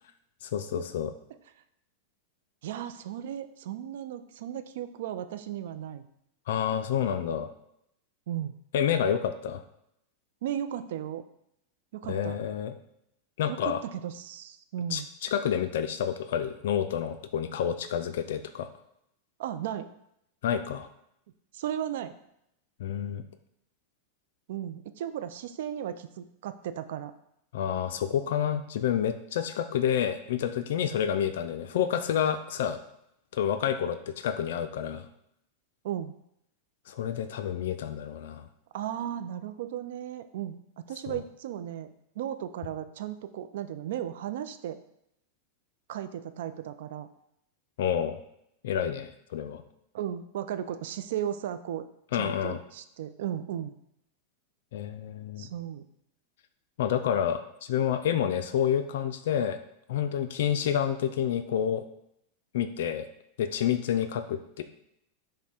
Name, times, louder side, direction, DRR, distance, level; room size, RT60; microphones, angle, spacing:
voice 1, 0.4-1.1 6.5-7.5 8.7-9.6 12.1-12.7 13.4-13.8 14.9-18.7 20.4-20.9 22.8-23.2 27.5-32.8 33.3-35.1 36.9-38.5 41.1-41.2 47.8-48.2 48.6-49.6 52.1-52.6 54.7-55.5 56.8-59.6 59.9-61.8 62.5-63.1 63.4-64.6, left 9 dB, 75° left, 9 dB, 0.3 m, -29 dB
voice 2, 2.6-6.1 8.3-8.5 10.4-11.2 11.9-12.4 13.5-15.1 19.4-19.9 21.5-22.1 24.5-27.1 35.8-36.1 38.7-40.6 40.9-41.9 42.2-44.8 45.9-47.1 49.9-51.9 52.1-53.7 55.4-55.8, right 10 dB, 70° right, 10 dB, 0.3 m, -35 dB
5.9 x 2.1 x 4.2 m, 0.77 s
hypercardioid pair, 120°, 0 cm